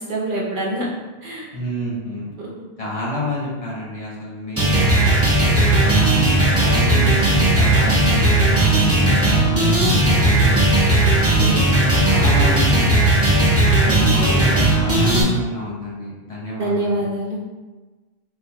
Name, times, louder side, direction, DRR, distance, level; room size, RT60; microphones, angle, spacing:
voice 1, 0.1-0.8 1.2-1.5 2.4-2.5 11.4-11.6 13.8-14.5 16.6-17.4, right 1 dB, 55° right, -4 dB, 0.8 m, -25 dB
voice 2, 1.5-2.3 2.8-5.2 5.7-10.6 11.2-13.4 13.8-17.0, equal, 35° left, -6 dB, 0.8 m, -29 dB
sound 1, 4.6-15.2, right 1 dB, 20° right, 0.5 m, -16 dB
4.5 x 2.0 x 2.8 m, 1.2 s
omnidirectional pair, 1.1 m